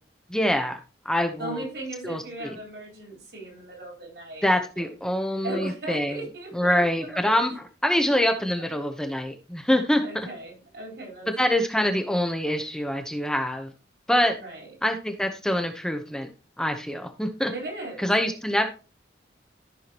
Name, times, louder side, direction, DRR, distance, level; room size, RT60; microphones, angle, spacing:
voice 1, 0.3-0.8 1.0-1.6 2.0-2.5 4.4-6.2 6.5-7.5 7.8-10.0 11.4-13.7 14.1-14.3 14.8-16.3 16.6-17.5 18.0-18.6, left 1 dB, 5° left, 5 dB, 0.8 m, -25 dB
voice 2, 1.4-4.5 4.8-4.9 5.4-7.3 8.0-8.7 10.0-11.3 11.7-11.9 14.4-14.7 17.5-18.1, right 2 dB, 75° right, 0 dB, 4.2 m, -38 dB
13.5 x 5.7 x 2.9 m, 0.34 s
head